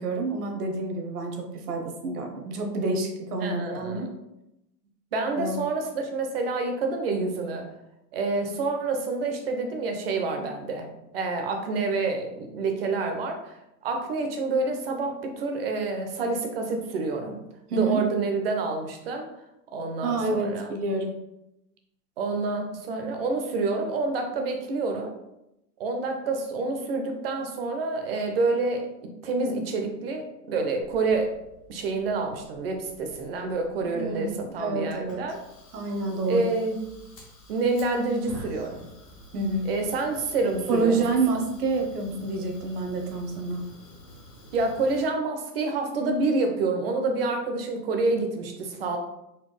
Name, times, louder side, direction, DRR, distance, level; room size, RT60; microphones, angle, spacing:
voice 1, 0.0-4.1 5.4-5.6 17.7-18.0 20.0-21.2 33.9-34.3 34.6-35.2 35.7-36.4 39.3-39.7 40.7-43.6, right 3 dB, 65° right, 3 dB, 0.9 m, -28 dB
voice 2, 3.4-4.1 5.1-7.7 8.1-10.9 11.1-17.4 17.7-19.3 19.7-20.7 22.2-25.1 25.8-31.3 31.7-35.4 36.3-36.7 37.5-38.9 39.7-41.0 44.5-49.0, right 3 dB, 40° right, 4 dB, 0.5 m, -28 dB
Fire, 30.8-45.1, left 1 dB, 25° left, 0.4 m, -49 dB
4.2 x 2.2 x 3.2 m, 0.88 s
hypercardioid pair, 145°, 49 cm